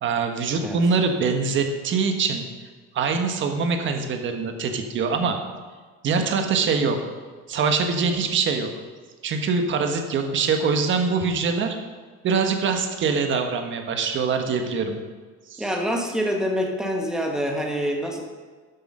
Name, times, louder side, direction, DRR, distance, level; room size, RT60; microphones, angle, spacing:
voice 1, 0.0-2.4 2.9-5.4 6.0-7.0 7.5-8.7 9.2-11.8 12.2-15.0 15.5-15.7, right 5 dB, 40° right, 5 dB, 1.4 m, -23 dB
voice 2, 15.6-18.2, equal, ahead, 1 dB, 1.3 m, -26 dB
12.5 x 8.1 x 5.5 m, 1.4 s
cardioid pair, 170°, 32 cm